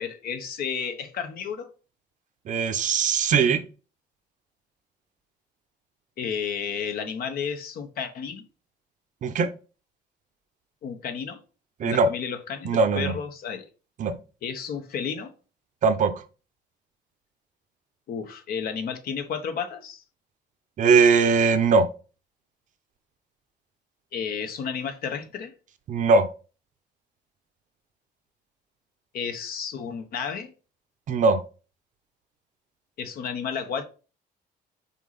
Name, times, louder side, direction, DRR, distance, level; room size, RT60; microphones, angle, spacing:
voice 1, 0.0-1.7 6.2-8.4 10.8-11.4 11.8-13.7 14.4-15.3 18.1-20.0 24.1-25.5 29.1-30.5 33.0-33.8, left 7 dB, 60° left, 1.1 m, -32 dB
voice 2, 2.5-3.6 9.2-9.5 11.8-12.1 12.6-13.2 14.0-14.1 15.8-16.1 20.8-21.8 25.9-26.3 31.1-31.4, right 4 dB, 50° right, 0.8 m, -20 dB
5.7 x 4.2 x 4.1 m
cardioid pair, 110°, 17 cm